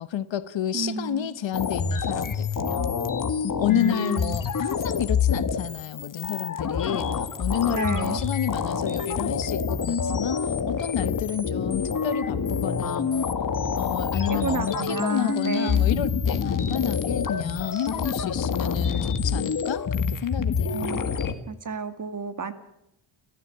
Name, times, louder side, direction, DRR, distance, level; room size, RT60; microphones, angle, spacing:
voice 1, 0.0-2.9 3.6-13.3 13.8-20.9, left 10 dB, 70° left, 1.2 m, -30 dB
voice 2, 0.7-1.3 3.7-4.4 7.7-8.2 14.3-16.0 20.7-21.1 21.5-22.5, right 5 dB, 40° right, 2.1 m, -31 dB
sound 1, 1.5-21.3, left 6 dB, 40° left, 1.9 m, -27 dB
29.5 x 14.0 x 8.7 m
wide cardioid pair, 135°, 47 cm